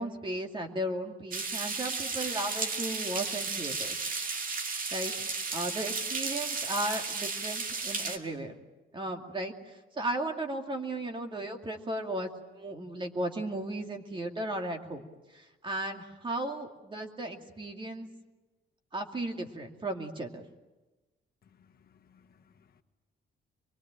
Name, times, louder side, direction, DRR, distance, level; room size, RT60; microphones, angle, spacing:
voice 1, 0.0-4.1 4.9-8.5 8.9-15.1 15.3-18.1 18.9-20.4, right 1 dB, 25° right, 4 dB, 2.5 m, -35 dB
sound 1, 1.3-8.2, right 4 dB, 45° right, 2.1 m, -34 dB
voice 2, 21.4-22.8, left 7 dB, 50° left, 6 dB, 1.6 m, -64 dB
24.5 x 23.0 x 9.1 m, 1.1 s
cardioid pair, 155°, 20 cm